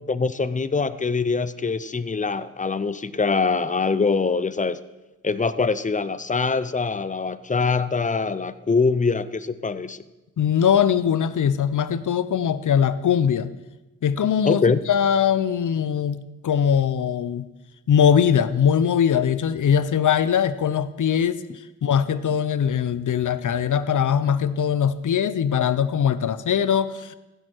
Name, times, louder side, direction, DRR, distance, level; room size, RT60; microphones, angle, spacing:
voice 1, 0.1-4.8 5.2-10.0 14.5-14.8, left 4 dB, 25° left, 15 dB, 0.5 m, -23 dB
voice 2, 10.4-13.5 14.0-17.5 17.9-21.4 21.8-27.1, left 8 dB, 60° left, 15 dB, 0.6 m, -21 dB
15.5 x 6.4 x 4.6 m, 1.0 s
cardioid pair, 70°, 34 cm